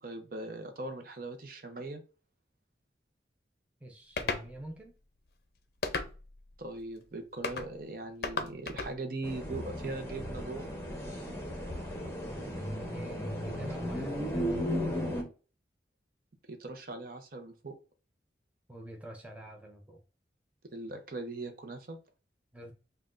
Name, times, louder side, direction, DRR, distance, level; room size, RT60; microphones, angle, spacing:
voice 1, 0.0-2.0 6.6-10.7 16.5-17.7 20.7-22.0, right 2 dB, 50° right, 0.6 m, -40 dB
voice 2, 3.8-4.9 12.5-15.3 18.7-20.0 22.5-22.7, right 1 dB, 5° right, 0.5 m, -48 dB
sound 1, 4.2-4.5 5.8-6.4 7.4-7.7 8.2-8.9, left 4 dB, 60° left, 0.5 m, -34 dB
sound 2, 9.2-15.2, equal, 15° left, 0.8 m, -35 dB
5.5 x 2.3 x 2.5 m
head